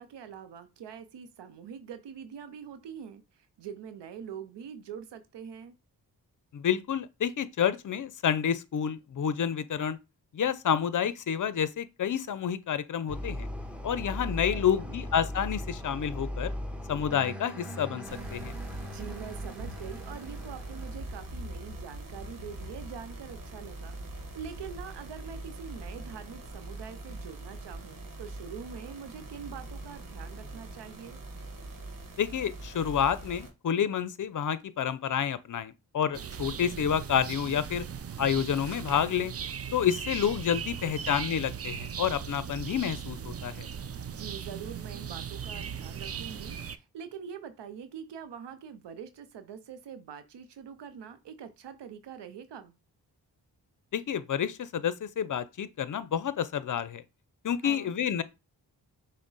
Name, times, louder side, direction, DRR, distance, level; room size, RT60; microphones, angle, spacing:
voice 1, 0.0-5.7 14.5-15.0 18.8-31.2 40.8-40.9 44.1-52.7 57.6-57.9, right 7 dB, 85° right, 0.6 m, -44 dB
voice 2, 6.5-10.0 10.3-13.5 13.8-16.5 16.9-18.0 18.3-18.6 32.2-37.8 38.2-39.3 39.7-43.7 53.9-57.0 57.4-58.2, left 8 dB, 50° left, 0.6 m, -29 dB
sound 1, 13.1-21.4, left 1 dB, 5° right, 0.8 m, -39 dB
sound 2, 18.0-33.5, right 2 dB, 50° right, 1.2 m, -42 dB
sound 3, 36.1-46.8, right 7 dB, 35° right, 0.4 m, -38 dB
6.0 x 2.2 x 4.0 m
cardioid pair, 45°, 41 cm